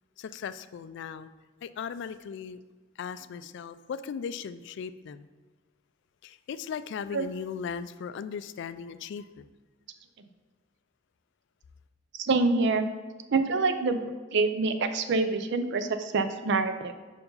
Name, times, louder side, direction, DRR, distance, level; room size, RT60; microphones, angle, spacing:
voice 1, 0.2-1.3 1.6-2.6 3.0-5.3 6.2-9.4, left 6 dB, 65° left, 13 dB, 0.3 m, -37 dB
voice 2, 12.1-12.9 13.3-14.0 14.3-16.9, right 3 dB, 65° right, 9 dB, 0.5 m, -26 dB
5.3 x 4.6 x 5.4 m, 1.4 s
head